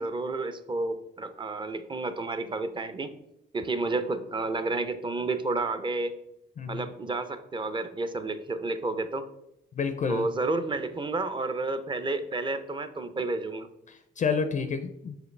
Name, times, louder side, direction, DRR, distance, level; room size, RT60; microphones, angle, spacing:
voice 1, 0.0-3.1 3.5-6.2 6.7-9.3 10.1-13.7, right 3 dB, 25° right, 11 dB, 0.6 m, -31 dB
voice 2, 9.8-10.3 13.9-15.2, left 5 dB, 40° left, 9 dB, 0.4 m, -29 dB
6.1 x 4.8 x 3.2 m, 0.82 s
cardioid pair, 90°, 20 cm